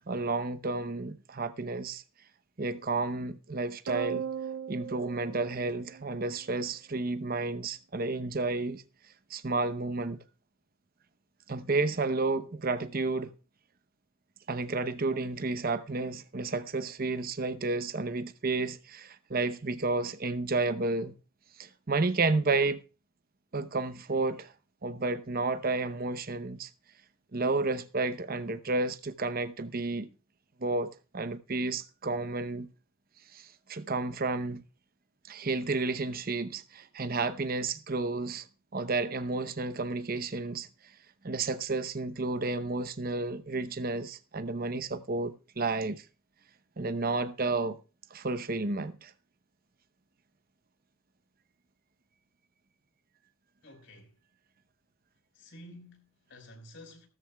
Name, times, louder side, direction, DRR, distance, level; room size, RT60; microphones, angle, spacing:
voice 1, 0.0-2.0 2.6-4.2 4.7-8.8 9.3-10.2 11.5-13.3 14.5-21.1 21.6-22.8 23.5-24.5 24.8-26.7 27.3-30.1 30.6-32.7 33.3-34.6 35.3-38.5 38.7-40.7 41.2-46.0 46.8-47.8 48.1-49.1, right 3 dB, 45° right, 0.8 m, -31 dB
sound 1, 3.9-6.5, right 7 dB, 80° right, 0.5 m, -38 dB
voice 2, 53.6-54.1 55.3-57.1, left 1 dB, 60° left, 4.9 m, -51 dB
17.5 x 13.5 x 2.3 m
head